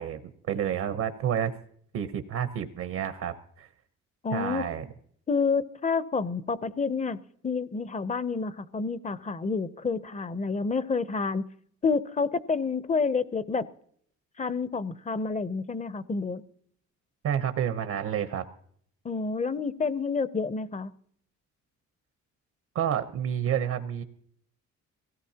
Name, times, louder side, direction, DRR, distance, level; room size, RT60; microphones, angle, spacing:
voice 1, 0.0-1.5 1.9-3.7 4.3-4.8 17.2-18.5 22.7-24.0, right 9 dB, 70° right, 8 dB, 1.0 m, -29 dB
voice 2, 4.2-4.6 5.3-7.2 7.4-11.4 11.8-13.6 14.4-16.4 19.0-20.9, left 4 dB, 25° left, 15 dB, 0.7 m, -29 dB
22.5 x 17.0 x 2.9 m, 0.64 s
cardioid pair, 90°, 30 cm